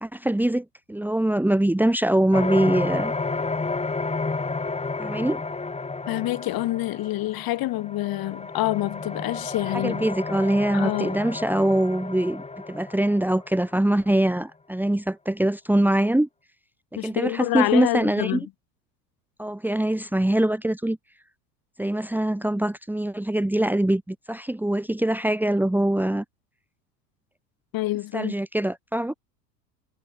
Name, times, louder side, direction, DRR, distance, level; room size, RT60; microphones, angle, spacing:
voice 1, 0.0-3.1 5.0-5.4 9.8-16.3 16.9-18.4 19.4-21.0 21.8-26.2 28.1-29.1, right 1 dB, 5° right, 2.2 m, -23 dB
sound 1, 2.3-13.8, left 3 dB, 10° left, 4.1 m, -31 dB
voice 2, 6.1-10.1 10.7-11.2 17.0-18.5 27.7-28.3, left 17 dB, 45° left, 1.9 m, -27 dB
hypercardioid pair, 100°, 50 cm